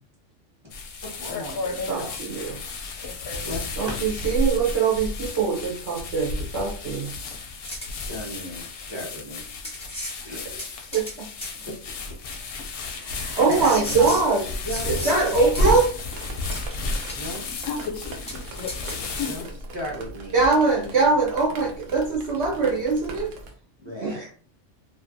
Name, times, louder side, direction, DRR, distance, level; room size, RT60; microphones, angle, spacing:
Plastic Bag, 0.7-19.6, left 2 dB, 60° left, 0.7 m, -32 dB
voice 1, 1.0-2.4 2.8-4.1 8.1-9.4 10.2-11.0 11.6-11.7 12.8-14.2 14.6-15.3 17.2-17.5 19.3-19.4 19.7-20.9 23.8-24.2, equal, 25° right, -4 dB, 0.8 m, -35 dB
voice 2, 1.9-2.6 3.8-7.1 10.9-11.3 13.4-14.4 14.8-15.9 20.3-23.3 24.0-24.3, right 4 dB, 65° right, -2 dB, 0.9 m, -22 dB
sound 1, 7.6-7.9 9.0-9.1 9.6-10.2 10.6-11.2 11.4-11.5 12.3-12.4 13.5-15.2 15.5-15.6 16.5-16.7 17.1-17.5 17.8-17.9 18.3-18.4 18.7-19.0, equal, 5° left, 0.7 m, -36 dB
Drip, 15.0-23.5, right 2 dB, 85° right, 1.0 m, -40 dB
voice 3, 17.5-19.5, left 6 dB, 90° left, 6 dB, 1.0 m, -34 dB
2.5 x 2.4 x 2.5 m, 0.42 s
omnidirectional pair, 1.3 m